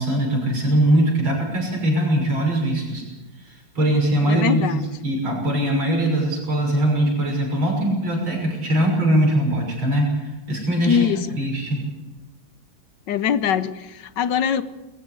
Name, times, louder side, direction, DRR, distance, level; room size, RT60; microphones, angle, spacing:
voice 1, 0.0-3.0 3.4-11.0 11.4-11.9, right 1 dB, 85° right, 7.0 m, -21 dB
voice 2, 4.3-4.9 10.8-11.4 13.1-14.6, left 8 dB, 65° left, 1.4 m, -22 dB
22.0 x 14.5 x 8.3 m
omnidirectional pair, 2.1 m